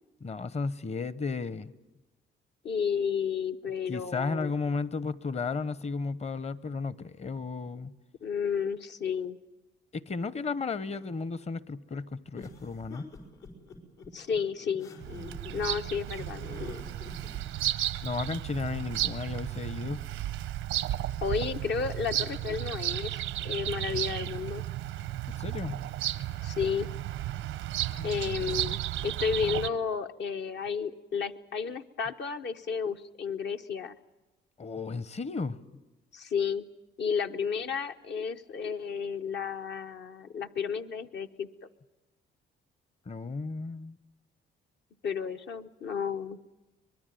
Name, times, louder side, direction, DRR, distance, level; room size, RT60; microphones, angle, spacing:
voice 1, 0.2-1.7 3.9-7.9 9.9-13.1 18.0-20.0 25.2-25.8 28.0-28.1 34.6-35.6 43.1-44.0, left 4 dB, 35° left, 17 dB, 0.9 m, -34 dB
voice 2, 2.6-4.5 8.2-9.4 14.1-14.9 15.5-16.7 21.2-24.6 26.4-26.9 28.0-33.9 36.1-36.7 37.0-41.5 45.0-46.4, left 6 dB, 60° left, 6 dB, 0.9 m, -32 dB
sound 1, 12.3-17.7, left 3 dB, 90° left, 5.1 m, -46 dB
Bird vocalization bird call bird song, 15.0-29.7, right 13 dB, 90° right, 0.7 m, -34 dB
24.0 x 21.0 x 9.2 m, 1.1 s
cardioid pair, 90°, 20 cm